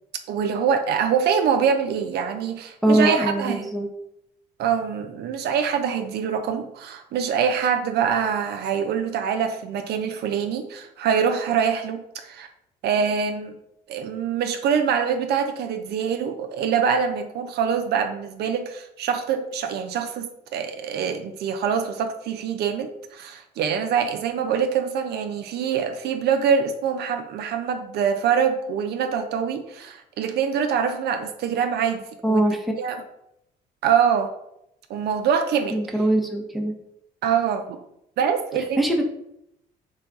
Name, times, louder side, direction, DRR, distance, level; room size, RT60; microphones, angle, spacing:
voice 1, 0.3-3.7 4.6-12.5 12.8-13.6 13.9-32.4 32.8-33.0 33.8-34.3 34.9-35.8 37.2-37.8 38.2-39.0, right 7 dB, 65° right, 6 dB, 0.4 m, -24 dB
voice 2, 2.8-3.9 32.2-32.7 35.7-36.7 38.8-39.0, right 1 dB, ahead, 1 dB, 0.7 m, -22 dB
3.3 x 2.3 x 3.9 m, 0.79 s
supercardioid pair, 75°, 18 cm